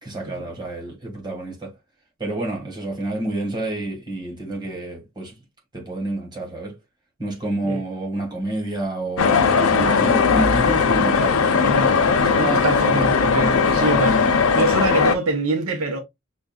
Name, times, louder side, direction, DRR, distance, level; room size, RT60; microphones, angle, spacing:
voice 1, 0.0-1.7 2.2-5.4 5.7-6.8 7.2-9.4 9.7-11.8 12.2-12.6 13.7-14.0, right 1 dB, 20° right, 1.8 m, -29 dB
sound 1, 9.2-15.1, left 5 dB, 85° left, 0.6 m, -18 dB
voice 2, 11.6-11.9 12.3-14.2 14.5-16.0, right 3 dB, 85° right, 0.9 m, -24 dB
6.1 x 2.6 x 2.4 m
head